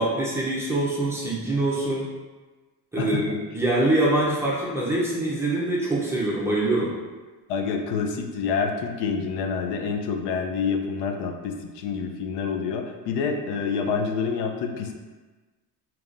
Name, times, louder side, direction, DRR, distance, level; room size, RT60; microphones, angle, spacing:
voice 1, 0.0-2.0 2.9-6.9, right 2 dB, 5° right, -6 dB, 0.6 m, -24 dB
voice 2, 7.5-14.9, left 5 dB, 80° left, 3 dB, 0.6 m, -27 dB
5.2 x 3.0 x 2.5 m, 1.3 s
cardioid pair, 170°, 41 cm